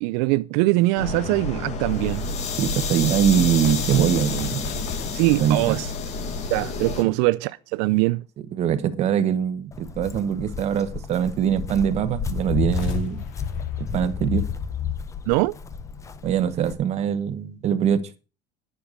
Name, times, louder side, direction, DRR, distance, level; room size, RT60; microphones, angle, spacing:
voice 1, 0.0-2.2 5.1-5.9 6.5-8.2 15.3-15.6, right 21 dB, 75° right, 0.4 m, -22 dB
sound 1, 1.0-7.0, left 3 dB, 30° left, 1.8 m, -29 dB
voice 2, 2.6-4.7 5.3-5.8 8.5-13.2 13.8-14.4 16.2-18.0, right 9 dB, 30° right, 1.1 m, -23 dB
sound 2, 3.5-7.0 12.6-14.7, left 8 dB, 65° left, 2.1 m, -40 dB
Walk footsteps, 9.7-16.7, left 7 dB, 15° left, 0.7 m, -31 dB
10.0 x 6.6 x 6.3 m
cardioid pair, 175°, 21 cm